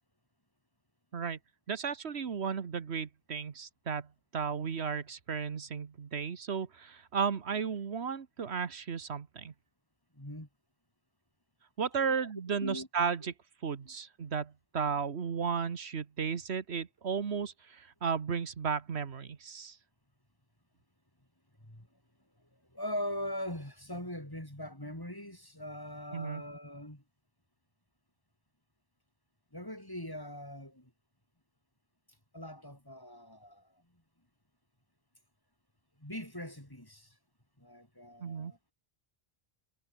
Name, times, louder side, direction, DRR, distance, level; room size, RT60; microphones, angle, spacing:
voice 1, 1.7-4.1 4.3-9.5 11.8-13.3 13.6-19.8 26.1-26.4 38.2-38.5, right 6 dB, 80° right, 1.5 m, -34 dB
voice 2, 10.1-10.5 12.0-12.2 12.6-12.9 13.2-13.3 13.8-13.9 21.6-21.9 22.7-27.0 29.5-30.9 32.3-33.7 36.0-37.1 37.6-38.6, left 1 dB, 20° left, 4.7 m, -41 dB
omnidirectional pair, 1.1 m